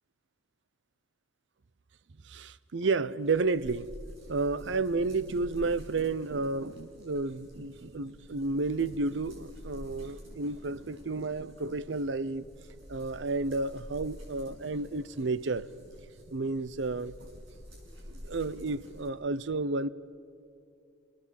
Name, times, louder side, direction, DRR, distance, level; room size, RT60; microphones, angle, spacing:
voice 1, 2.2-3.9 4.3-12.5 12.9-15.7 16.3-17.3 18.1-19.9, right 3 dB, 65° right, 0.6 m, -31 dB
sound 1, 3.2-19.1, equal, 85° right, 6.7 m, -49 dB
29.5 x 19.0 x 7.6 m
head